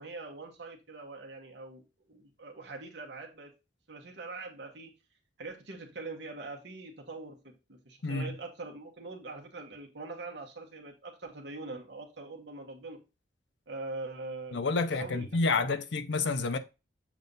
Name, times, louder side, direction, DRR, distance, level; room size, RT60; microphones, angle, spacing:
voice 1, 0.0-3.5 3.9-4.9 5.4-13.0 13.7-14.6 14.9-15.3 15.5-15.7, right 3 dB, 70° right, 1.2 m, -43 dB
voice 2, 8.0-8.3 14.5-16.6, left 3 dB, 75° left, 0.7 m, -29 dB
7.3 x 2.6 x 5.3 m
head